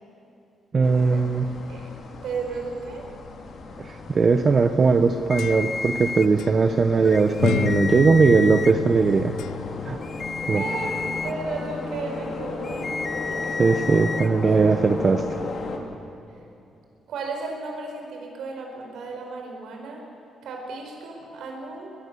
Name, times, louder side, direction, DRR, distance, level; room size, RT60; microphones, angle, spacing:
voice 1, 0.7-1.4 3.8-9.3 9.8-10.0 10.5-10.6 13.6-15.2, right 4 dB, 35° right, 7 dB, 0.8 m, -19 dB
sound 1, 0.8-15.8, left 3 dB, 50° left, 2.5 m, -35 dB
voice 2, 1.7-3.1 10.5-13.0 13.3-13.5 17.1-20.0 20.4-21.9, right 4 dB, 75° right, 1 dB, 5.0 m, -34 dB
sound 2, 4.9-6.0 6.4-6.6 7.4-9.9, left 12 dB, 90° left, 0.5 m, -30 dB
sound 3, 5.3-6.3 7.0-8.7 10.0-11.3 12.6-14.3, left 4 dB, 25° left, 0.6 m, -31 dB
23.5 x 20.5 x 6.9 m, 2.7 s
cardioid pair, 135°, 0 cm